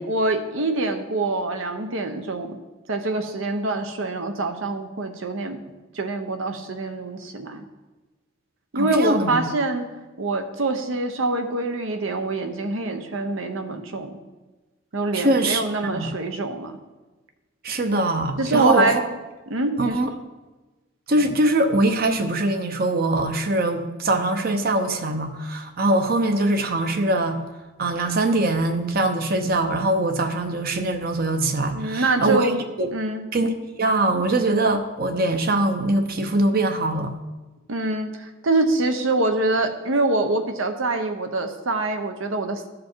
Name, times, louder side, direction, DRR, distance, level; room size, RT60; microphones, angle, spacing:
voice 1, 0.0-2.6 2.9-5.6 5.9-7.6 8.7-9.8 10.2-14.2 14.9-16.7 18.4-19.0 19.5-20.0 31.7-32.6 32.9-33.3 37.7-42.7, right 2 dB, 80° right, 7 dB, 0.9 m, -25 dB
voice 2, 8.7-9.5 15.1-16.2 17.6-19.0 19.8-20.1 21.1-27.4 27.8-32.5 32.8-32.9 33.3-37.1, right 2 dB, 50° right, 6 dB, 0.8 m, -22 dB
13.0 x 5.1 x 4.5 m, 1.2 s
head